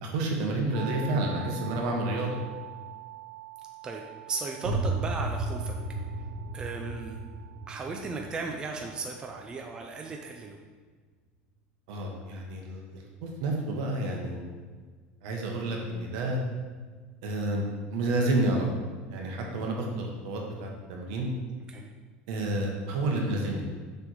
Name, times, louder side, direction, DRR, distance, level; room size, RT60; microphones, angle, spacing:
voice 1, 0.0-2.4 11.9-12.8 13.2-14.4 15.2-16.4 17.2-17.6 17.9-18.7 19.1-21.3 22.3-23.6, right 2 dB, 70° right, 0 dB, 1.4 m, -30 dB
sound 1, 0.7-10.5, right 18 dB, 35° right, 0.8 m, -46 dB
voice 2, 3.8-5.8 6.5-7.2 7.7-10.6 21.7-21.9, right 4 dB, 20° right, 2 dB, 0.5 m, -36 dB
sound 2, 4.6-10.2, right 2 dB, 90° right, 1.2 m, -34 dB
6.8 x 3.6 x 4.7 m, 1.5 s
cardioid pair, 155°, 4 cm